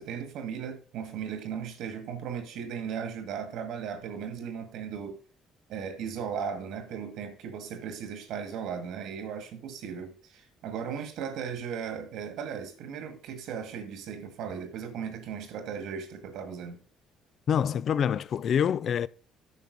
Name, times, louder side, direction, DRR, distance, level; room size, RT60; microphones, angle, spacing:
voice 1, 0.0-5.2 5.7-16.8, right 7 dB, 75° right, 2.0 m, -37 dB
voice 2, 17.5-19.1, left 8 dB, 55° left, 0.4 m, -26 dB
9.6 x 5.7 x 5.3 m
supercardioid pair, 70°, 0 cm